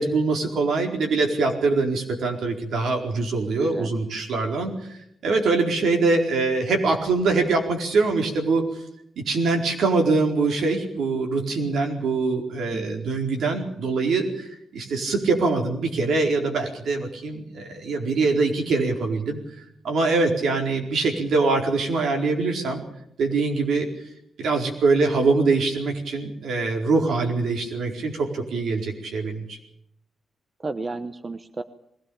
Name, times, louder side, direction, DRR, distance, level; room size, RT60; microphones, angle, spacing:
voice 1, 0.0-8.6 9.2-19.4 19.8-22.8 23.2-23.9 24.4-29.6, right 3 dB, 75° right, 2 dB, 4.5 m, -23 dB
voice 2, 3.6-3.9 12.7-13.0 30.6-31.6, right 3 dB, 25° right, 11 dB, 0.9 m, -32 dB
20.5 x 17.0 x 8.7 m, 0.75 s
cardioid pair, 125°, 0 cm